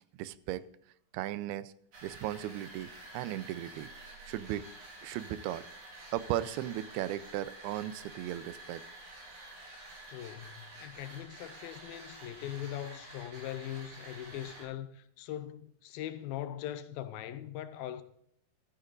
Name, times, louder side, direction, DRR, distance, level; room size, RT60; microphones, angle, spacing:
voice 1, 0.2-0.6 1.1-1.7 2.0-3.9 4.3-4.7 5.0-5.6 6.1-8.8, right 13 dB, 85° right, 2.5 m, -36 dB
sound 1, 1.9-14.6, right 2 dB, 50° right, 5.6 m, -50 dB
voice 2, 10.1-18.0, left 11 dB, 80° left, 2.4 m, -41 dB
14.5 x 14.0 x 2.5 m
omnidirectional pair, 4.5 m